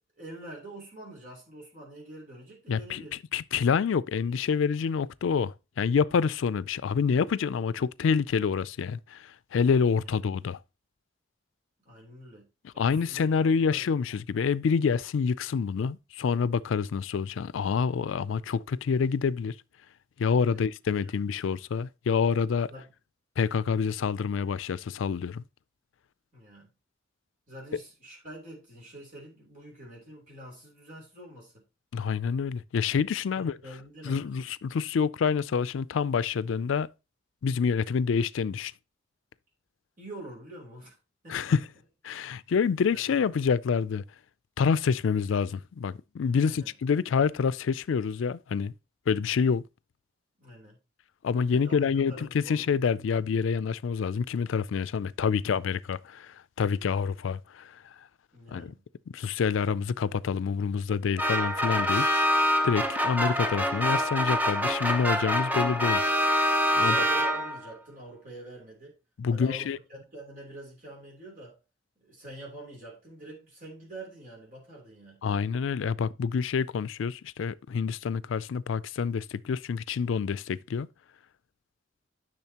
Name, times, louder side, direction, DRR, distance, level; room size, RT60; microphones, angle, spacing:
voice 1, 0.2-3.2 4.2-4.4 10.0-10.1 11.8-12.5 12.7-13.9 20.5-20.7 21.0-21.1 22.7-22.9 26.3-26.7 27.5-31.6 33.3-34.4 40.0-40.9 41.2-41.4 42.9-43.4 46.4-46.7 50.4-50.8 51.5-52.7 58.3-58.8 66.7-69.0 69.3-71.6 72.0-75.2, right 1 dB, 45° right, 3.4 m, -46 dB
voice 2, 2.7-3.0 3.3-10.6 12.8-19.5 20.2-22.7 23.4-25.4 31.9-33.6 34.0-36.9 37.4-38.7 41.3-41.6 42.0-44.0 44.6-48.7 49.1-49.6 51.2-57.8 58.5-58.7 59.1-62.1 62.6-66.0 66.8-67.0 69.2-69.8 75.2-80.9, left 6 dB, 80° left, 0.4 m, -27 dB
sound 1, 61.2-67.7, equal, 10° right, 0.8 m, -25 dB
10.5 x 6.3 x 2.9 m
head